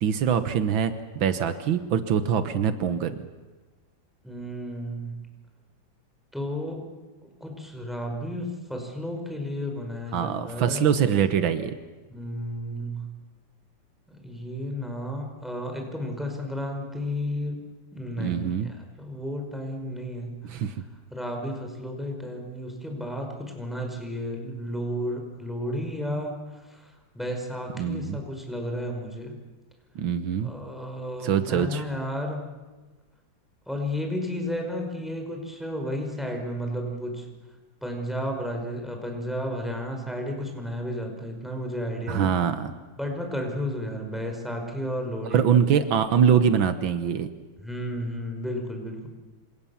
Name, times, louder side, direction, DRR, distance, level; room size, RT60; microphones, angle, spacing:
voice 1, 0.0-3.1 10.1-11.7 18.2-18.7 20.4-20.7 27.8-28.2 30.0-30.5 31.2-31.8 42.1-42.7 45.2-47.3, right 8 dB, 85° right, 10 dB, 1.9 m, -23 dB
voice 2, 4.2-5.3 6.3-6.8 7.2-10.9 12.1-13.1 14.1-17.6 17.9-20.4 21.1-29.4 30.4-32.4 33.7-37.3 37.8-42.3 43.0-45.5 47.6-49.1, equal, ahead, 2 dB, 5.4 m, -33 dB
27.5 x 27.0 x 7.3 m, 1.2 s
omnidirectional pair, 2.1 m